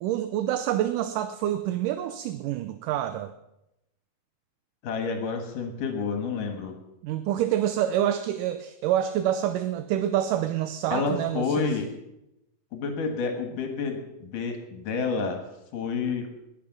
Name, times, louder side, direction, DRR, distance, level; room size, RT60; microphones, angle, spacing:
voice 1, 0.0-3.3 7.0-11.7, right 11 dB, 75° right, 10 dB, 2.1 m, -27 dB
voice 2, 4.8-6.7 10.9-11.9 12.7-15.4 15.7-16.3, left 5 dB, 70° left, 4 dB, 3.1 m, -29 dB
21.0 x 8.7 x 5.9 m, 0.88 s
omnidirectional pair, 4.0 m